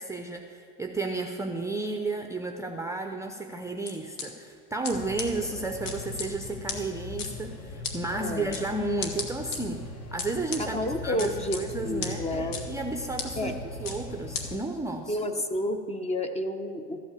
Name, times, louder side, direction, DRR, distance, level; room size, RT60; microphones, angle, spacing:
voice 1, 0.0-13.5 13.8-15.2, right 2 dB, 10° right, 4 dB, 0.6 m, -33 dB
sound 1, 3.9-4.3 4.8-4.9 5.2-5.3 5.8-6.3 6.7-6.8 7.2-7.3 7.8-7.9 8.5-8.6 9.0-9.6 10.2-10.6 11.2-11.6 12.0-12.1 12.5-12.6 13.2-13.3 13.8-14.0 14.3-14.4, left 5 dB, 65° left, 1.6 m, -33 dB
sound 2, 4.9-14.6, left 2 dB, 45° left, 1.1 m, -40 dB
voice 2, 8.1-8.6 10.6-12.6 13.4-13.5 15.1-17.0, left 1 dB, 15° left, 8 dB, 0.9 m, -30 dB
13.5 x 5.4 x 8.3 m, 2.4 s
supercardioid pair, 100°, 36 cm